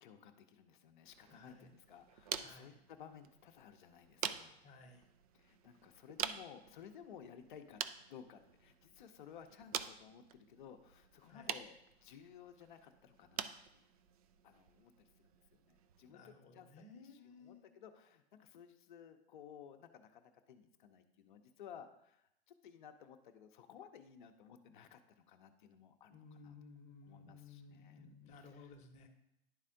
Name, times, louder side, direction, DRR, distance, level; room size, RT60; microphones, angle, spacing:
voice 1, 0.0-4.6 5.3-7.8 8.1-13.8 14.4-26.6 27.1-28.0 28.3-28.7, left 8 dB, 50° left, 7 dB, 0.7 m, -57 dB
sound 1, 1.1-16.1, right 9 dB, 35° right, 0.4 m, -47 dB
voice 2, 1.3-1.7 2.3-2.8 4.6-5.0 11.3-11.5 16.1-17.7 26.1-29.1, left 4 dB, 20° left, 4 dB, 0.9 m, -57 dB
10.5 x 4.1 x 3.7 m, 0.82 s
figure-of-eight pair, 105°, 33 cm